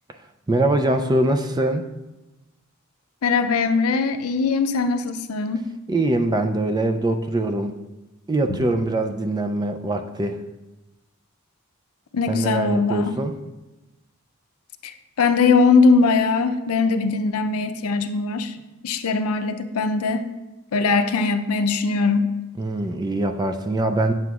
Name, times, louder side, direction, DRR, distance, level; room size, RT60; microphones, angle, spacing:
voice 1, 0.5-1.8 5.9-7.8 8.3-10.4 12.3-13.3 22.6-24.1, right 1 dB, 20° right, 6 dB, 0.3 m, -23 dB
voice 2, 3.2-5.7 8.5-8.6 12.1-13.1 14.8-18.6 18.8-20.3 20.7-22.3, left 4 dB, 85° left, 8 dB, 0.5 m, -21 dB
9.0 x 7.7 x 2.4 m, 1.1 s
head